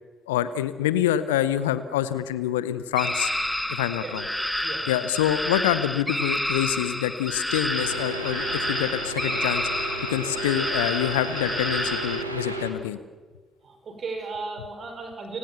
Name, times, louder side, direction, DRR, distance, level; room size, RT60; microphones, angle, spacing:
voice 1, 0.3-3.3 3.7-4.2 4.9-9.8 10.1-13.0, left 12 dB, 75° left, 15 dB, 0.8 m, -26 dB
sound 1, 3.0-12.2, left 1 dB, 5° left, 1.6 m, -29 dB
voice 2, 4.0-4.3 4.6-5.0 13.6-15.4, right 4 dB, 50° right, 5 dB, 5.6 m, -36 dB
sound 2, 7.7-12.7, right 2 dB, 90° right, 1.6 m, -34 dB
30.0 x 18.0 x 7.1 m, 1.4 s
figure-of-eight pair, 40°, 0 cm